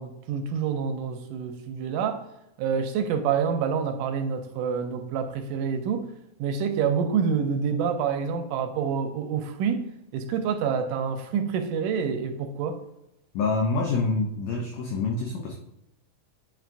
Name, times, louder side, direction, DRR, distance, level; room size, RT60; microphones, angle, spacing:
voice 1, 0.0-2.3 2.6-6.1 6.4-9.8 10.1-12.8, right 6 dB, 80° right, 2.1 m, -27 dB
voice 2, 13.3-15.6, left 3 dB, 80° left, 1.6 m, -26 dB
9.2 x 4.6 x 2.5 m
omnidirectional pair, 4.0 m